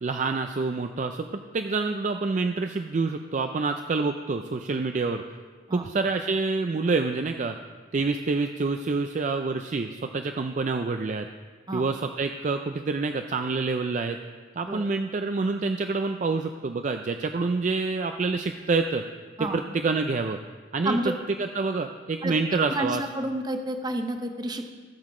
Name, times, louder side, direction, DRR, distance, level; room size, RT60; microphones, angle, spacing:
voice 1, 0.0-5.2 5.7-7.6 7.9-11.3 11.7-14.2 14.6-19.0 19.4-20.4 20.7-21.1 21.4-23.0, right 3 dB, 40° right, 6 dB, 0.4 m, -27 dB
voice 2, 23.2-24.7, right 1 dB, 20° right, 6 dB, 0.8 m, -29 dB
16.0 x 6.5 x 4.9 m, 1.5 s
head